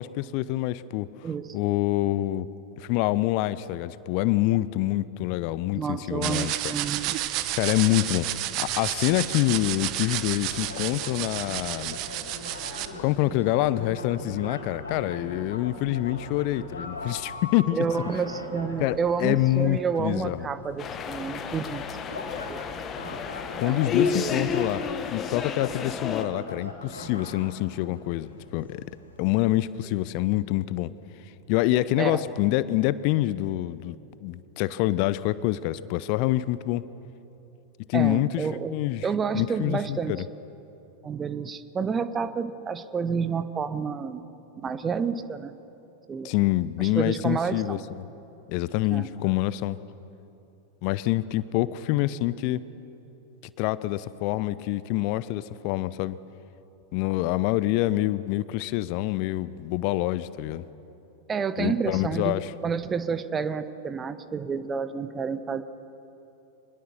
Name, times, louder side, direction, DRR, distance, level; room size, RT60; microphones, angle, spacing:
voice 1, 0.0-1.1 1.5-2.5 2.8-6.7 7.6-8.3 8.6-12.0 13.0-17.8 18.8-20.5 23.6-24.8 25.1-28.8 29.2-30.9 31.5-33.9 34.2-36.8 37.9-38.4 38.7-39.0 39.3-40.2 46.2-48.0 48.5-49.8 50.8-52.6 53.6-56.2 56.9-60.6 61.6-62.5, left 16 dB, 45° left, 17 dB, 0.6 m, -26 dB
voice 2, 5.7-7.1 17.7-21.9 22.5-22.7 23.6-24.6 32.0-32.3 37.9-38.7 39.0-40.2 41.0-44.2 44.6-45.5 46.1-46.3 46.8-47.8 48.9-49.1 61.3-62.3 62.6-65.6, right 6 dB, 20° right, 13 dB, 0.9 m, -29 dB
sound 1, 6.2-12.9, right 14 dB, 40° right, 1.2 m, -31 dB
sound 2, 10.5-29.6, left 2 dB, 75° left, 3.8 m, -40 dB
sound 3, 20.8-26.3, left 7 dB, 25° left, 1.5 m, -31 dB
25.0 x 20.5 x 7.1 m, 3.0 s
figure-of-eight pair, 90°, 0 cm